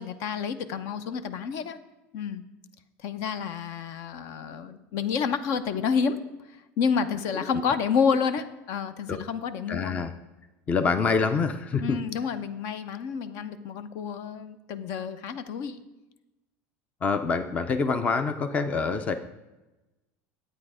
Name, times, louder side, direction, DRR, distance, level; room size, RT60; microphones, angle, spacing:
voice 1, 0.0-1.8 2.1-2.4 3.0-6.2 6.5-10.0 11.8-15.8, left 6 dB, 55° left, 12 dB, 0.7 m, -29 dB
voice 2, 9.7-10.1 10.7-12.0 17.0-19.1, left 4 dB, 20° left, 9 dB, 0.5 m, -26 dB
11.5 x 8.8 x 4.9 m, 1.0 s
cardioid pair, 155°, 6 cm